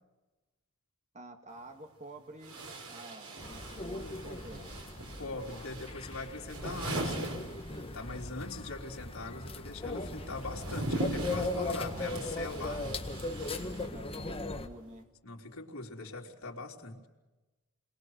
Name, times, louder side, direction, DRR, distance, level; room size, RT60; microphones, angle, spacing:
voice 1, 1.1-2.6 2.9-4.7 10.1-10.2 11.8-12.4 13.9-15.1, right 1 dB, 35° right, 5 dB, 2.0 m, -50 dB
sound 1, 1.5-1.6 2.4-8.2 8.5-14.3, right 1 dB, 90° right, 5.1 m, -40 dB
sound 2, 3.4-14.7, left 2 dB, 25° left, 1.7 m, -38 dB
voice 2, 5.2-7.4 7.9-13.0 15.2-17.1, left 3 dB, 85° left, -1 dB, 3.8 m, -42 dB
30.0 x 22.5 x 6.5 m, 1.1 s
head